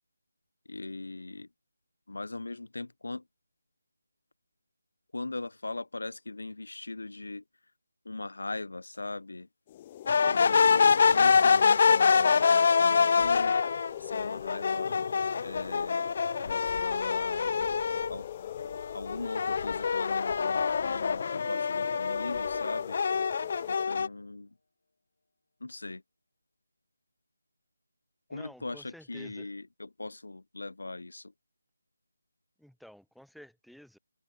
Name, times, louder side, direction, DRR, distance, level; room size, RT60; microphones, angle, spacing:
voice 1, 0.7-1.5 2.1-3.2 5.1-7.4 8.0-9.5 10.2-13.6 14.0-15.0 15.4-16.1 16.4-17.5 18.1-18.3 18.9-23.0 23.7-24.5 25.6-26.0 28.3-31.3, left 2 dB, 85° left, 5.5 m, -40 dB
sound 1, 8.9-9.1 10.8-23.7, left 3 dB, 65° left, 6.4 m, -55 dB
sound 2, 9.7-23.8, left 12 dB, 15° left, 1.8 m, -41 dB
sound 3, 10.1-18.2 18.6-24.1, left 5 dB, 35° left, 0.3 m, -25 dB
voice 2, 28.3-29.5 32.6-34.0, equal, ahead, 5.4 m, -52 dB
open air
figure-of-eight pair, 175°, 0 cm